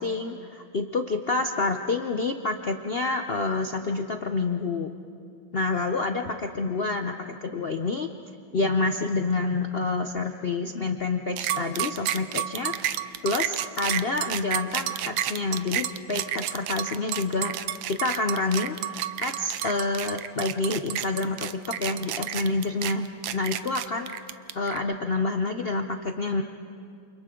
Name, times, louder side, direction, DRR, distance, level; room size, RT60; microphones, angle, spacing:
voice 1, 0.0-4.9 5.5-8.1 8.5-17.5 17.9-23.1 23.3-24.1 24.5-26.4, left 3 dB, 80° left, 5 dB, 0.5 m, -28 dB
sound 1, 11.4-24.8, right 11 dB, 75° right, 1.4 m, -30 dB
29.0 x 29.0 x 3.8 m, 2.5 s
omnidirectional pair, 2.2 m